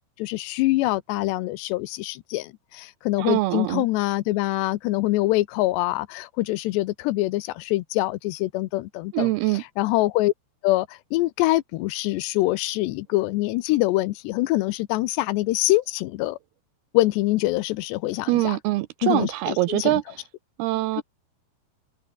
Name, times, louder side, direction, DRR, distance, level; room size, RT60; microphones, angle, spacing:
voice 1, 0.2-10.3 10.6-16.4 16.9-18.6 19.0-20.0 21.0-21.1, left 18 dB, 80° left, 2.8 m, -24 dB
voice 2, 3.2-3.8 9.1-9.6 18.3-20.2 20.6-21.0, right 18 dB, 90° right, 2.3 m, -24 dB
omnidirectional pair, 5.2 m